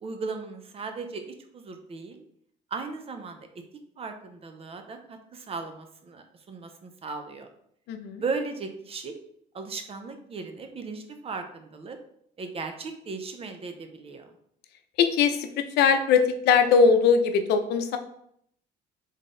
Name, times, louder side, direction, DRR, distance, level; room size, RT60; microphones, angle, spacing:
voice 1, 0.0-2.2 2.7-3.4 4.0-7.5 8.2-9.2 9.5-12.0 12.4-14.3, right 4 dB, 35° right, 6 dB, 0.7 m, -36 dB
voice 2, 7.9-8.2 15.0-15.5 15.8-18.0, left 6 dB, 75° left, 7 dB, 0.6 m, -20 dB
3.8 x 3.6 x 3.8 m, 0.70 s
cardioid pair, 110°, 17 cm